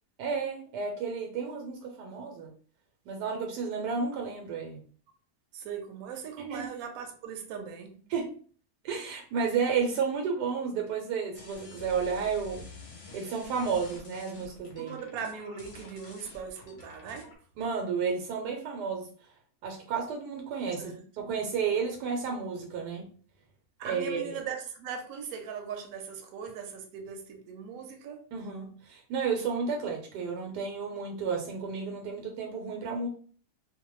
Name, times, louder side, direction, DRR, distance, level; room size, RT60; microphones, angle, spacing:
voice 1, 0.2-2.5 3.1-4.8 6.5-6.7 8.1-8.3 8.8-12.6 13.1-15.0 17.6-19.1 19.6-23.1 23.8-24.3 28.3-33.1, right 5 dB, 90° right, 2 dB, 1.2 m, -32 dB
voice 2, 5.5-8.0 14.8-17.4 20.8-21.0 23.8-28.2, right 6 dB, 70° right, 3 dB, 1.0 m, -39 dB
sound 1, 11.3-17.4, left 3 dB, 55° left, 0.7 m, -49 dB
2.8 x 2.1 x 3.0 m, 0.43 s
omnidirectional pair, 1.7 m